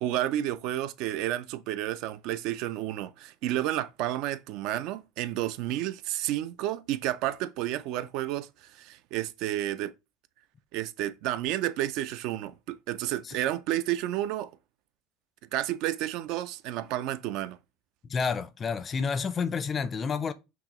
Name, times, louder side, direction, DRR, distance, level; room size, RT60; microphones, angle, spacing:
voice 1, 0.0-9.9 10.7-14.5 15.5-17.6, right 13 dB, 60° right, 0.3 m, -31 dB
voice 2, 18.1-20.3, left 5 dB, 30° left, 0.4 m, -29 dB
5.8 x 2.0 x 2.9 m
supercardioid pair, 115°, 0 cm